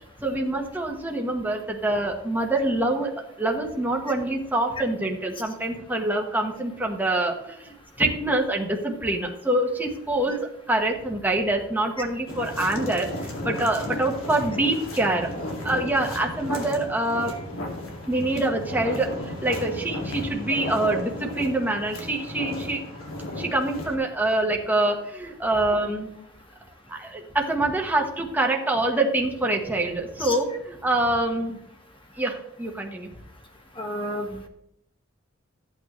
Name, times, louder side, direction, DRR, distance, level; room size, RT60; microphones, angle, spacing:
voice 1, 0.2-10.4 10.7-15.3 15.6-17.3 18.1-22.8 23.3-26.1 26.9-31.6 32.2-33.1, right 2 dB, 10° right, 0 dB, 1.3 m, -25 dB
sound 1, 12.3-24.0, left 1 dB, 85° left, 2.2 m, -34 dB
voice 2, 33.8-34.5, left 1 dB, 25° left, 3 dB, 1.4 m, -31 dB
14.0 x 8.8 x 3.2 m, 0.77 s
head